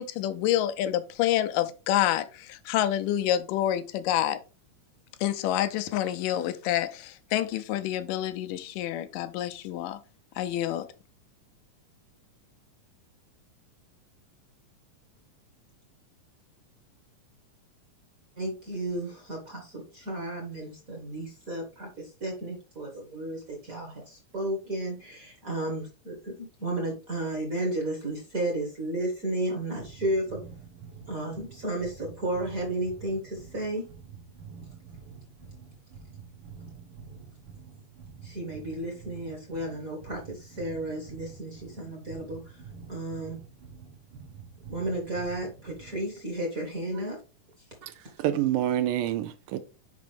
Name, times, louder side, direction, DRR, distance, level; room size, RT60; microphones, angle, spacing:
voice 1, 0.0-4.4 5.2-10.0 10.4-10.9, left 12 dB, 85° left, 2.2 m, -28 dB
voice 2, 18.4-30.4 31.1-33.8 38.2-42.4 42.9-43.4 44.7-47.2, right 1 dB, 40° right, 1.2 m, -33 dB
sound 1, 29.7-46.1, right 6 dB, 60° right, 1.3 m, -47 dB
voice 3, 48.2-49.6, right 12 dB, 80° right, 2.0 m, -27 dB
6.0 x 5.2 x 3.3 m
omnidirectional pair, 3.8 m